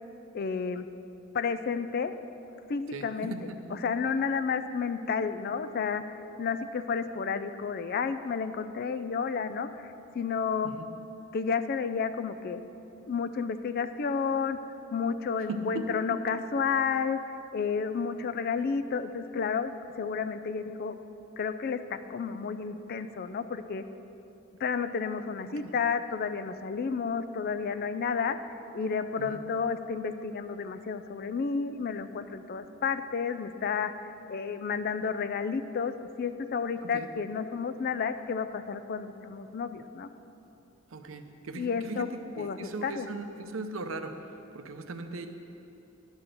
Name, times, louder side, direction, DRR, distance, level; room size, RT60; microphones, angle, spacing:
voice 1, 0.3-0.9 1.3-2.1 2.7-3.3 3.8-6.0 6.4-9.9 10.1-10.7 11.3-12.6 13.1-14.6 14.9-17.2 17.5-21.0 21.4-23.8 24.6-28.4 28.7-33.9 34.3-40.1 41.5-42.1 42.4-43.1, left 5 dB, 50° left, 11 dB, 0.4 m, -31 dB
voice 2, 2.9-3.7 10.6-10.9 15.5-16.0 25.5-25.6 29.2-29.4 36.8-37.1 40.9-45.3, right 2 dB, 80° right, 7 dB, 0.7 m, -39 dB
11.0 x 4.2 x 7.8 m, 2.9 s
head